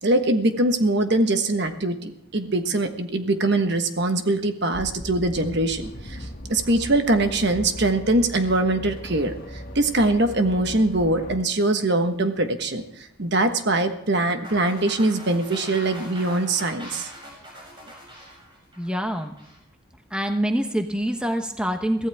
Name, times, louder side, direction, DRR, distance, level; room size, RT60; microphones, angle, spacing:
voice 1, 0.0-12.8 13.2-17.1, right 2 dB, 50° right, 7 dB, 1.3 m, -22 dB
Air Raid Soundscape, 4.7-11.4, equal, 40° left, 2.0 m, -38 dB
sound 1, 14.4-19.6, equal, 20° right, 7.3 m, -42 dB
voice 2, 18.8-19.3 20.1-22.1, equal, 5° right, 5 dB, 1.0 m, -25 dB
23.0 x 15.5 x 3.6 m, 0.76 s
head